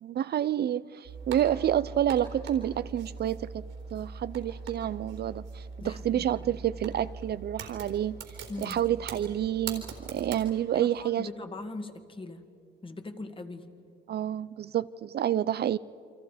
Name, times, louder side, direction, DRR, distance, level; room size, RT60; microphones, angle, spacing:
voice 1, 0.0-3.6 3.9-8.2 8.6-11.3 14.1-15.8, right 11 dB, 55° right, 16 dB, 0.5 m, -29 dB
sound 1, 1.0-10.5, right 5 dB, 85° right, 3.9 m, -42 dB
voice 2, 5.8-6.3 8.5-8.8 10.7-12.4 12.8-13.7, left 2 dB, 25° left, 7 dB, 1.9 m, -40 dB
29.0 x 24.5 x 5.0 m, 2.6 s
cardioid pair, 90°, 20 cm